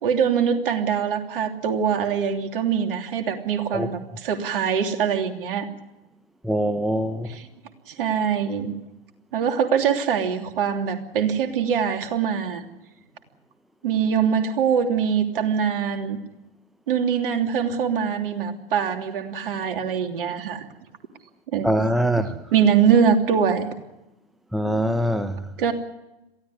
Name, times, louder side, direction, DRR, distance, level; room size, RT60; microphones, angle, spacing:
voice 1, 0.0-5.7 7.3-7.5 7.9-8.7 9.3-12.6 13.8-16.2 16.9-20.7 21.5-21.7 22.5-23.7 25.6-25.7, right 7 dB, 60° right, 3.1 m, -23 dB
voice 2, 6.4-7.3 21.6-22.3 24.5-25.4, equal, ahead, 1.1 m, -23 dB
22.5 x 16.5 x 9.8 m
figure-of-eight pair, 100°, 31 cm